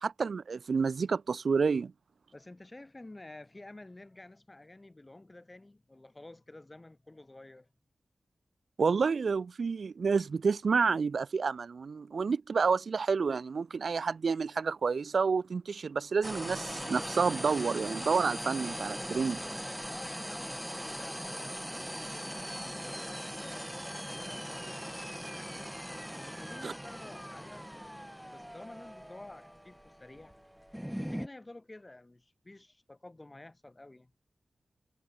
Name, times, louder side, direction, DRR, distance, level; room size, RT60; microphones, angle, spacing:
voice 1, 0.0-1.9 8.8-19.4 26.6-26.7, right 5 dB, 75° right, 0.4 m, -29 dB
voice 2, 2.3-7.7 19.9-23.7 24.1-25.7 26.2-27.9 28.3-30.3 30.9-34.1, left 2 dB, 25° left, 7.7 m, -51 dB
sound 1, 16.2-31.3, equal, ahead, 1.9 m, -40 dB
wide cardioid pair, 70°, 0 cm